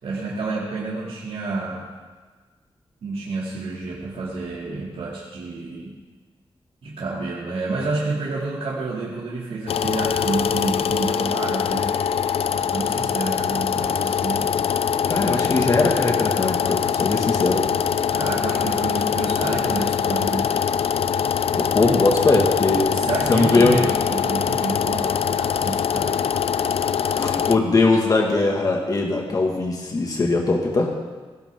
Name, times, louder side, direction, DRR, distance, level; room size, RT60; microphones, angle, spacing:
voice 1, 0.0-1.9 3.0-5.9 6.8-11.9 12.5-14.5 15.6-15.7 18.1-20.5 22.9-26.2, right 3 dB, 85° right, -6 dB, 2.8 m, -29 dB
sound 1, 9.7-27.6, left 8 dB, 85° left, 0.5 m, -23 dB
voice 2, 15.1-17.7 21.5-22.9 23.3-23.8 27.2-30.9, left 3 dB, 40° left, 0 dB, 2.1 m, -20 dB
18.0 x 17.0 x 3.9 m, 1.4 s
wide cardioid pair, 170°, 10 cm